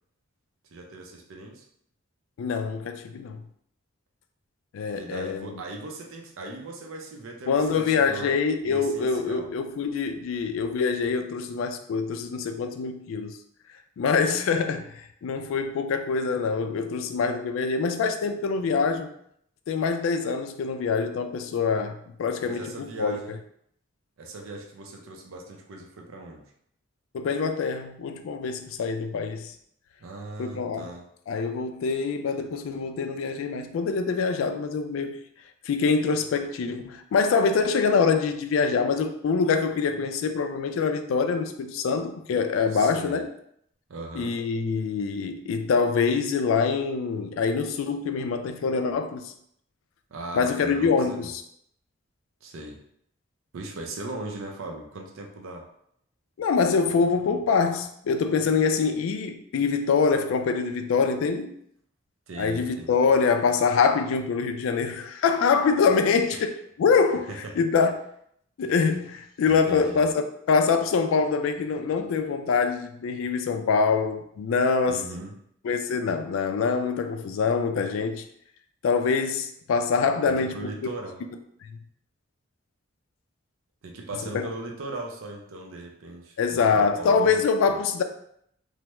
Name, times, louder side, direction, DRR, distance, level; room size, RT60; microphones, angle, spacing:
voice 1, 0.7-1.7 5.0-8.4 8.6-9.5 22.4-23.4 24.2-26.5 30.0-31.1 42.7-43.2 43.9-44.4 50.1-51.3 52.4-52.8 53.5-55.7 62.3-63.1 66.3-66.4 67.3-67.5 69.5-70.1 74.9-75.4 80.3-81.2 83.8-87.7, right 2 dB, 80° right, 1 dB, 0.5 m, -39 dB
voice 2, 2.4-3.4 4.7-5.5 7.5-13.4 14.0-19.1 19.7-23.2 27.1-29.5 30.4-30.9 31.3-35.2 35.6-43.3 44.1-49.3 50.3-51.4 56.4-61.5 62.4-67.3 67.6-67.9 68.6-70.1 70.5-75.0 75.6-78.2 78.8-80.9 81.6-81.8 84.3-84.5 86.4-88.0, left 5 dB, 80° left, 8 dB, 0.3 m, -25 dB
3.3 x 2.0 x 3.0 m, 0.70 s
head